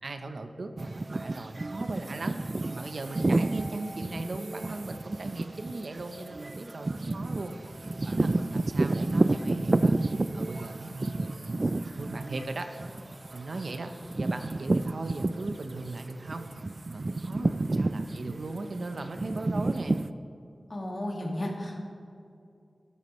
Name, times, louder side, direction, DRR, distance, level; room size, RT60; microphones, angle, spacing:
voice 1, 0.0-2.4 2.7-7.5 8.0-10.0 10.3-12.7 13.3-16.5 16.9-20.0, right 2 dB, 70° right, 7 dB, 0.8 m, -38 dB
sound 1, 0.8-15.9 16.3-20.1, right 2 dB, 45° right, 0.3 m, -30 dB
voice 2, 20.7-21.8, left 1 dB, 45° left, 0 dB, 2.0 m, -34 dB
13.0 x 12.5 x 3.2 m, 2.5 s
wide cardioid pair, 65°, 0 cm